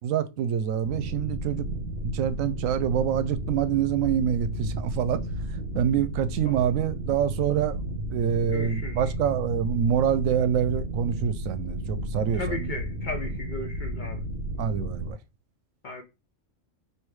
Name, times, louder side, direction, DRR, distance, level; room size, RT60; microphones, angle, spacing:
voice 1, 0.0-1.7 2.1-5.2 5.5-7.8 8.1-12.7 14.6-15.2, right 9 dB, 85° right, 1.0 m, -26 dB
sound 1, 0.8-15.1, equal, 55° right, 1.1 m, -33 dB
voice 2, 8.5-9.0 12.3-14.2 15.8-16.0, left 3 dB, 50° left, 0.6 m, -35 dB
3.5 x 2.7 x 4.6 m
omnidirectional pair, 1.3 m